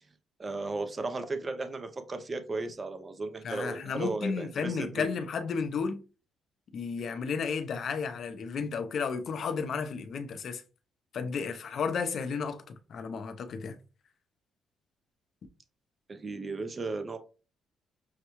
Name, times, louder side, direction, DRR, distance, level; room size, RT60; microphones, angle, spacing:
voice 1, 0.4-5.1 16.1-17.2, right 3 dB, 30° right, 0.6 m, -35 dB
voice 2, 3.4-6.0 6.7-10.6 11.1-13.8, left 5 dB, 60° left, 0.6 m, -33 dB
6.3 x 2.2 x 3.0 m
cardioid pair, 90°, 0 cm